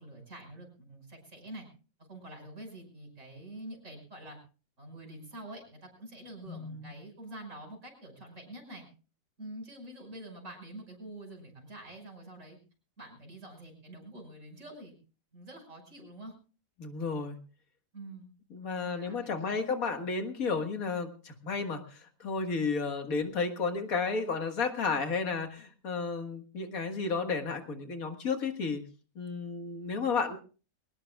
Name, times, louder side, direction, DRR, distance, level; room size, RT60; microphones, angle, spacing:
voice 1, 0.0-1.7 2.1-4.4 4.8-8.8 9.4-12.6 13.0-14.9 15.3-16.3 17.9-18.3 18.8-19.7, right 1 dB, 60° right, 3 dB, 6.0 m, -46 dB
voice 2, 6.5-6.9 16.8-17.4 18.5-28.9 29.2-30.4, left 4 dB, 85° left, 6 dB, 2.1 m, -32 dB
23.0 x 18.5 x 2.3 m, 0.36 s
omnidirectional pair, 1.5 m